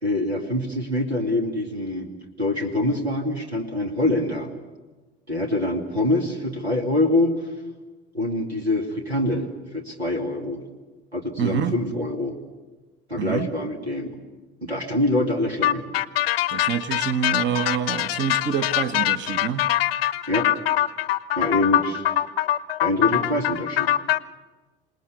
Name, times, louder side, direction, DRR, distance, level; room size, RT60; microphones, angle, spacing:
voice 1, 0.0-2.1 2.4-4.5 5.3-7.4 8.1-9.5 9.7-10.6 11.1-12.3 13.1-14.2 14.6-15.8 20.3-20.5 21.4-22.0 22.8-23.9, left 1 dB, 90° right, 3 dB, 2.6 m, -24 dB
voice 2, 11.4-11.7 13.2-13.5 16.5-19.6, right 8 dB, 35° right, 10 dB, 1.2 m, -26 dB
sound 1, 15.6-24.2, left 13 dB, 65° left, 0.8 m, -23 dB
27.0 x 19.5 x 8.3 m, 1.2 s
figure-of-eight pair, 65°, 31 cm